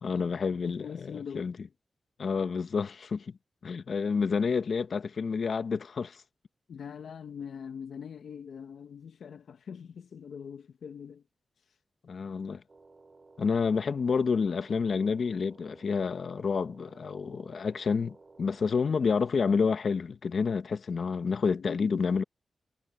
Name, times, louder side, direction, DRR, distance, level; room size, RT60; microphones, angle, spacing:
voice 1, 0.0-1.5 2.2-3.3 3.6-6.2 12.1-12.6 13.4-22.2, left 5 dB, 65° left, 1.2 m, -29 dB
voice 2, 0.5-1.6 6.7-11.2 19.0-19.1 21.5-22.2, left 7 dB, 85° left, 1.0 m, -43 dB
sound 1, 12.7-19.0, right 3 dB, 40° right, 3.9 m, -56 dB
cardioid pair, 80°, 0 cm